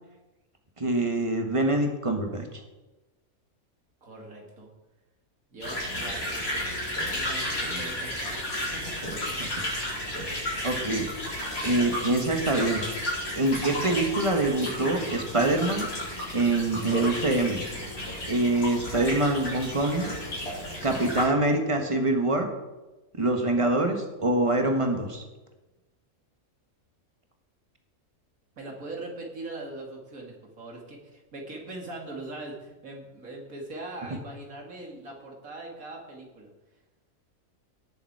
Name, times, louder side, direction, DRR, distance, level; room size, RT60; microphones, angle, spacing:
voice 1, 0.8-2.6 7.7-7.8 9.4-9.5 10.6-11.1 11.6-12.8 13.3-15.9 16.3-17.6 18.3-20.1 20.8-22.5 23.1-25.2, right 2 dB, 25° right, 4 dB, 1.5 m, -25 dB
voice 2, 4.0-4.7 5.5-6.4 7.0-8.4 8.6-9.3 28.6-36.5, right 2 dB, 75° right, 0 dB, 2.7 m, -41 dB
sound 1, 5.6-21.2, left 1 dB, 80° left, 4.6 m, -33 dB
18.0 x 7.1 x 4.8 m, 1.1 s
omnidirectional pair, 1.5 m